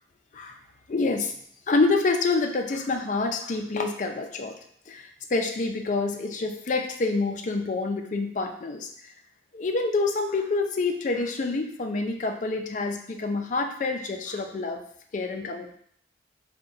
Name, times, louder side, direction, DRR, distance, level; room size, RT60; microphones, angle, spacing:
voice 1, 0.9-1.3 1.7-4.5 4.9-9.1 9.5-14.8 15.1-15.8, left 3 dB, 45° left, 4 dB, 0.4 m, -27 dB
3.7 x 2.2 x 3.9 m, 0.65 s
head